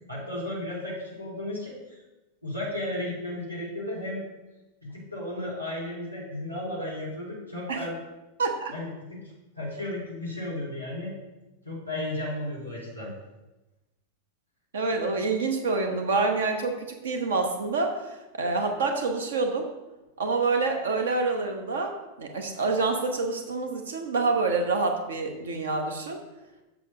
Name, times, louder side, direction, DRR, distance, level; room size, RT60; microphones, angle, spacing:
voice 1, 0.1-2.0 2.4-4.2 4.8-8.0 8.7-9.2 9.5-11.2 11.6-13.1, left 1 dB, 90° right, -6 dB, 3.0 m, -34 dB
voice 2, 8.4-8.7 14.7-19.7 20.2-26.2, right 3 dB, 65° right, 4 dB, 1.0 m, -27 dB
7.6 x 5.9 x 5.0 m, 1.0 s
figure-of-eight pair, 90°, 0 cm